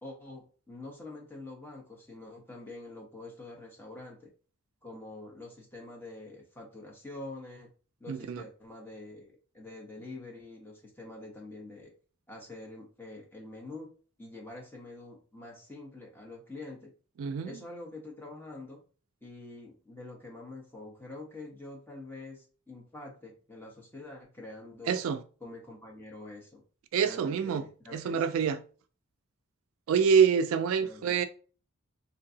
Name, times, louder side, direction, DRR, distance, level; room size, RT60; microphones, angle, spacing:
voice 1, 0.0-4.3 4.8-7.7 8.0-11.9 12.3-13.9 14.2-16.9 17.4-18.8 19.2-25.0 25.4-26.6 27.0-28.2 30.8-31.2, left 2 dB, 10° left, 0.9 m, -46 dB
voice 2, 8.1-8.4 17.2-17.6 24.9-25.2 26.9-27.6 27.9-28.6 29.9-31.3, right 6 dB, 65° right, 0.3 m, -26 dB
3.7 x 2.6 x 2.7 m
head